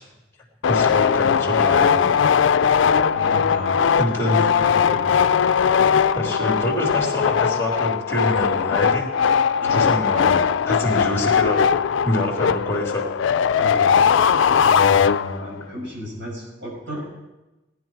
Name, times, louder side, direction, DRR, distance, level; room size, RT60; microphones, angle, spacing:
sound 1, 0.6-15.6, left 7 dB, 80° left, 0.4 m, -19 dB
voice 1, 0.7-2.1 4.0-4.4 6.1-9.1 9.6-11.7 12.0-13.1, left 1 dB, 15° left, 0 dB, 2.8 m, -25 dB
voice 2, 3.0-5.1 9.6-9.9 13.5-14.2 14.5-17.1, left 1 dB, 70° right, -2 dB, 6.4 m, -33 dB
18.5 x 10.5 x 4.7 m, 1.0 s
head